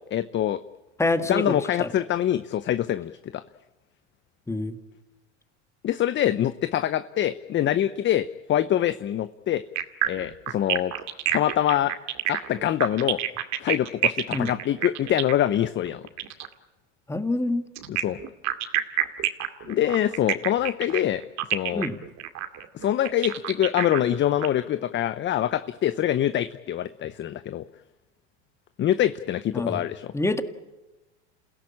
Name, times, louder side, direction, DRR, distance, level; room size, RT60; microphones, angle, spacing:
voice 1, 0.1-0.6 1.3-3.4 5.8-9.6 10.0-10.9 11.3-11.9 12.3-13.2 13.6-16.0 17.9-18.2 19.7-21.2 21.5-21.9 22.7-27.6 28.8-30.1, left 11 dB, 30° left, 13 dB, 0.8 m, -25 dB
voice 2, 1.0-1.9 4.5-4.8 14.3-14.5 17.1-17.6 21.7-22.0 29.5-29.8 30.1-30.4, left 2 dB, 10° left, 9 dB, 1.8 m, -26 dB
sound 1, 9.8-16.5 17.8-24.5, right 13 dB, 50° right, 2.4 m, -28 dB
28.0 x 17.0 x 8.6 m, 1.1 s
hypercardioid pair, 100°, 36 cm